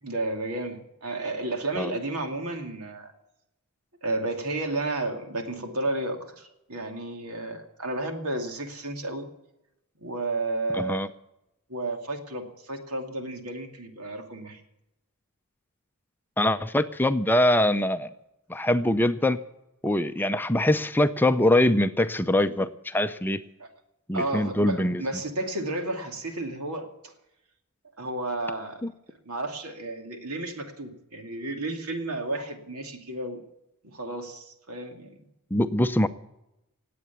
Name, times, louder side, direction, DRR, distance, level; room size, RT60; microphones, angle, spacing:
voice 1, 0.0-3.1 4.0-9.3 10.0-11.0 11.7-14.6 23.6-23.7 24.1-27.1 28.0-28.8 29.2-33.4 33.8-35.2, right 2 dB, 80° right, 5 dB, 2.5 m, -32 dB
voice 2, 10.7-11.1 16.4-18.1 18.5-19.4 19.8-23.4 24.1-25.0 28.8-28.9 35.5-36.1, left 1 dB, 10° left, 10 dB, 0.5 m, -23 dB
18.5 x 8.5 x 8.3 m, 0.89 s
head